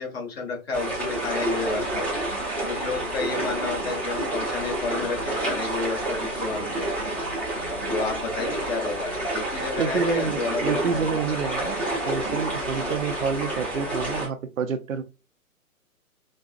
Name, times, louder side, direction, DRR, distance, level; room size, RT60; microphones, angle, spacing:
voice 1, 0.0-2.1 2.6-6.9 7.9-11.2 11.6-11.7, left 4 dB, 45° left, 1.6 m, -31 dB
sound 1, 0.7-14.3, right 1 dB, 5° left, 0.6 m, -29 dB
voice 2, 9.8-15.0, right 6 dB, 65° right, 0.6 m, -28 dB
5.1 x 2.3 x 2.5 m
figure-of-eight pair, 125°, 43 cm